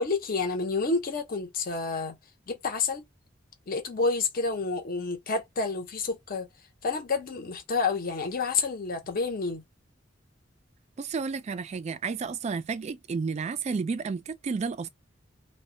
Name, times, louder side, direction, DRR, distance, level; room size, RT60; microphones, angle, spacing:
voice 1, 0.0-2.2 2.5-3.0 3.7-6.5 6.8-9.6, left 4 dB, 50° left, 0.6 m, -29 dB
voice 2, 11.0-14.9, right 5 dB, 35° right, 0.3 m, -31 dB
2.1 x 2.1 x 3.7 m
head